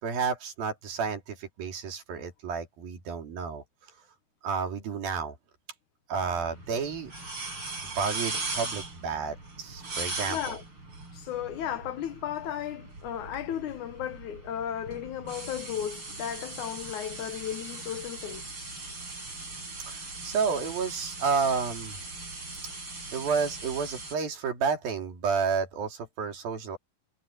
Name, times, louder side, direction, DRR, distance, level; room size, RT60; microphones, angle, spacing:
voice 1, 0.0-3.6 4.4-5.4 6.1-7.1 7.8-10.6 19.9-22.0 23.1-26.8, right 5 dB, 80° right, 5.1 m, -31 dB
sound 1, 6.1-24.1, right 3 dB, 35° right, 8.0 m, -39 dB
voice 2, 10.3-10.6 11.1-18.5, left 10 dB, 70° left, 2.2 m, -35 dB
omnidirectional pair, 4.1 m